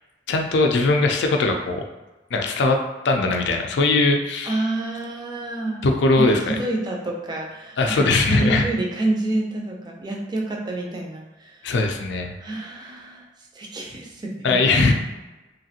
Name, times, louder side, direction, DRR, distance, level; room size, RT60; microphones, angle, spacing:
voice 1, 0.3-1.8 2.3-4.6 5.8-6.4 7.8-8.6 11.6-12.4 14.4-14.9, left 3 dB, 70° left, 3 dB, 0.4 m, -20 dB
voice 2, 4.4-5.9 6.2-11.7 12.4-13.3 13.5-14.4 14.7-14.8, right 2 dB, 25° right, -1 dB, 0.5 m, -28 dB
3.1 x 2.4 x 2.7 m, 1.1 s
head